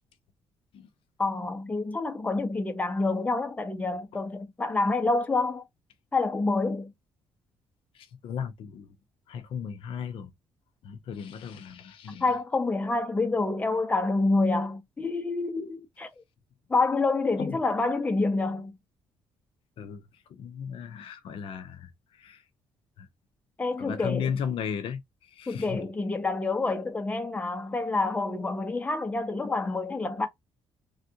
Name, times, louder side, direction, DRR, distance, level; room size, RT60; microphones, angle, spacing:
voice 1, 1.2-5.6 6.1-6.9 12.2-16.2 16.7-18.7 23.6-24.3 25.5-30.3, left 3 dB, 15° left, 0.7 m, -27 dB
voice 2, 7.9-8.9 9.3-10.3 10.8-12.4 17.4-17.6 19.8-22.5 23.0-23.1 23.8-25.8, left 7 dB, 65° left, 0.5 m, -36 dB
3.3 x 2.5 x 2.7 m
cardioid pair, 125°, 10 cm